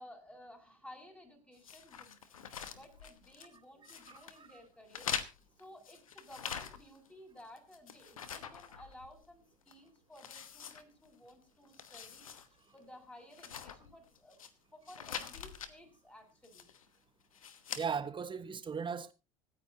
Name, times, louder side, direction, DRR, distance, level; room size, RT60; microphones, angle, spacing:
voice 1, 0.0-5.1 5.6-14.4 14.7-16.7, left 1 dB, 5° left, 7.1 m, -56 dB
sound 1, 1.6-3.6 3.8-4.4 4.9-7.1 7.4-9.3 9.7-9.8 10.2-11.3 11.6-12.5 12.8-12.9 13.3-14.5 14.9-15.7 16.4-16.9 17.3-17.9, left 7 dB, 90° left, 1.2 m, -44 dB
voice 2, 4.1-4.5 17.8-19.1, right 6 dB, 30° right, 1.4 m, -38 dB
25.0 x 9.6 x 2.9 m
hypercardioid pair, 70°, 17 cm